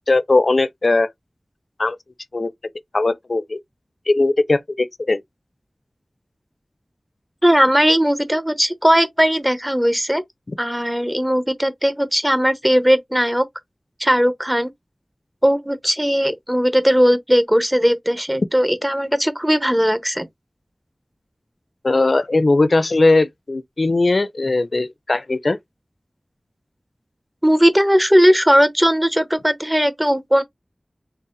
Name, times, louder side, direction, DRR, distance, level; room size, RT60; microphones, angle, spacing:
voice 1, 0.1-1.1 1.8-2.0 2.3-2.5 2.9-3.6 4.1-5.2 21.8-25.6, left 2 dB, 65° left, 0.4 m, -18 dB
voice 2, 7.4-10.2 10.6-13.5 14.0-14.7 15.4-20.3 27.4-30.4, equal, 10° right, 0.8 m, -18 dB
4.1 x 2.0 x 3.8 m
wide cardioid pair, 60°, 0 cm